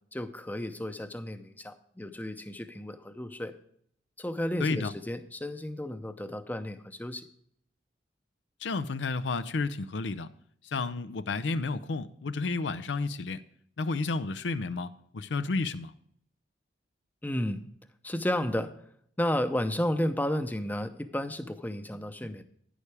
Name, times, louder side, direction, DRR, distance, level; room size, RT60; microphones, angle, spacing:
voice 1, 0.1-3.5 4.2-7.3 17.2-17.6 18.0-18.7 19.2-22.4, left 1 dB, 10° left, 10 dB, 0.6 m, -32 dB
voice 2, 4.6-4.9 8.6-10.3 10.6-13.4 13.8-15.9, left 3 dB, 85° left, 12 dB, 0.5 m, -31 dB
11.0 x 9.8 x 3.3 m, 0.65 s
head